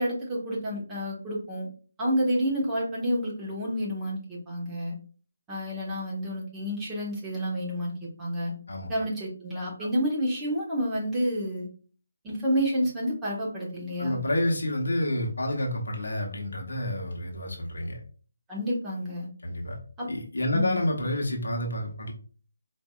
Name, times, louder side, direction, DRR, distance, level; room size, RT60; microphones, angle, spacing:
voice 1, 0.0-1.7 2.0-4.9 5.5-8.5 8.9-11.7 12.2-14.2 18.5-19.3 20.0-20.1 20.5-20.8, equal, 10° right, -6 dB, 1.1 m, -29 dB
voice 2, 14.0-18.0 19.4-19.8 20.1-22.1, left 1 dB, 65° left, 0 dB, 1.0 m, -29 dB
4.4 x 2.6 x 2.3 m, 0.40 s
figure-of-eight pair, 150°, 0 cm